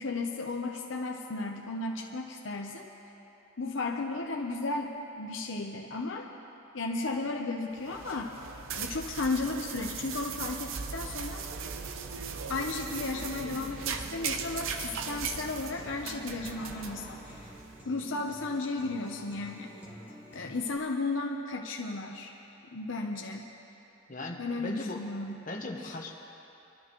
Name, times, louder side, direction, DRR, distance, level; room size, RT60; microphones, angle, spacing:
voice 1, 0.0-2.9 3.6-6.3 6.7-8.3 8.7-11.4 12.5-17.5 17.9-19.7 20.3-22.3 22.7-23.5 24.4-25.4 25.8-25.9, left 3 dB, 75° left, 1 dB, 0.8 m, -34 dB
sound 1, 7.7-17.7, right 6 dB, 85° right, 0.7 m, -38 dB
Human voice / Acoustic guitar, 12.8-20.8, equal, 10° right, 2.1 m, -49 dB
voice 2, 24.1-25.0 25.5-26.1, left 2 dB, 40° left, 0 dB, 1.3 m, -38 dB
24.5 x 12.5 x 3.1 m, 2.9 s
head